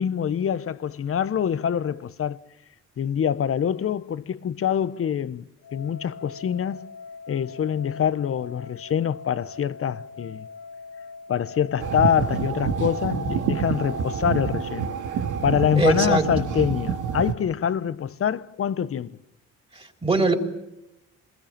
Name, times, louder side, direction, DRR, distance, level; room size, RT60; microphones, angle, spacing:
voice 1, 0.0-2.4 3.0-6.9 7.3-10.5 11.3-14.9 15.4-19.2, left 8 dB, 50° left, 1.0 m, -25 dB
sound 1, 5.6-14.3, left 4 dB, 85° left, 4.3 m, -42 dB
sound 2, 11.8-17.3, right 7 dB, 85° right, 2.1 m, -27 dB
voice 2, 15.7-16.3 19.8-20.3, right 2 dB, 20° right, 4.0 m, -21 dB
27.5 x 21.5 x 7.5 m
cardioid pair, 90°, 30 cm